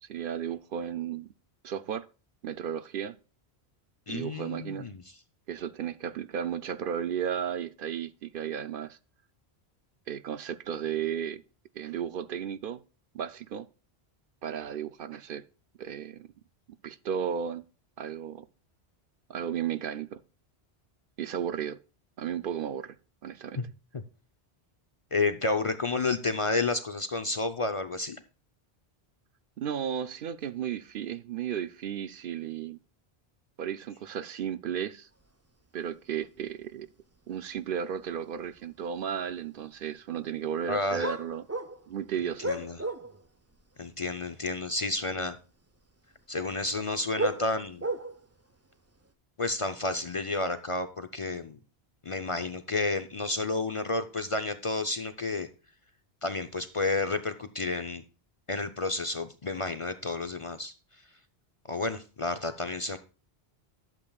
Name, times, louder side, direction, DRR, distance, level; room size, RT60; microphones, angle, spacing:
voice 1, 0.0-1.3 1.6-2.1 2.4-3.1 4.1-4.9 5.5-9.0 10.1-11.4 11.7-12.8 13.1-13.7 14.4-15.4 15.8-16.3 16.8-17.6 18.0-18.5 19.3-20.2 21.2-21.8 22.2-23.0 23.2-23.6 29.6-32.8 33.6-35.1 35.7-36.9 37.3-41.5 41.9-42.5, right 8 dB, 65° right, 0.7 m, -34 dB
voice 2, 4.1-5.0 23.6-23.7 25.1-28.2 40.7-41.1 42.4-42.8 43.8-45.4 46.3-47.9 49.4-51.6 52.0-55.5 56.2-58.0 58.5-60.7 61.7-63.0, left 3 dB, 40° left, 0.6 m, -31 dB
sound 1, 37.5-37.6 38.1-38.6 39.0-39.2 41.0-43.3 43.5-43.7 44.7-44.8 45.1-45.4 46.6-48.4 48.9-49.1, right 2 dB, 20° right, 0.5 m, -34 dB
12.0 x 7.4 x 2.3 m
omnidirectional pair, 1.1 m